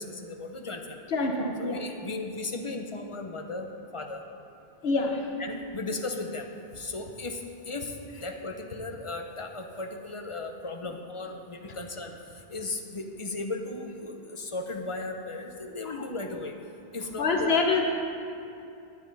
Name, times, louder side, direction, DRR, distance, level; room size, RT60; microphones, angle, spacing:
voice 1, 0.0-1.0 1.6-3.7 3.9-4.2 5.4-6.5 6.8-7.4 7.6-7.9 8.2-12.1 12.5-16.5 16.9-17.5, left 3 dB, 35° left, 4 dB, 0.7 m, -36 dB
voice 2, 1.1-1.8 4.8-5.3 15.8-16.1 17.2-17.9, left 3 dB, 75° left, 2 dB, 1.2 m, -26 dB
11.5 x 9.8 x 4.0 m, 2.6 s
omnidirectional pair, 1.0 m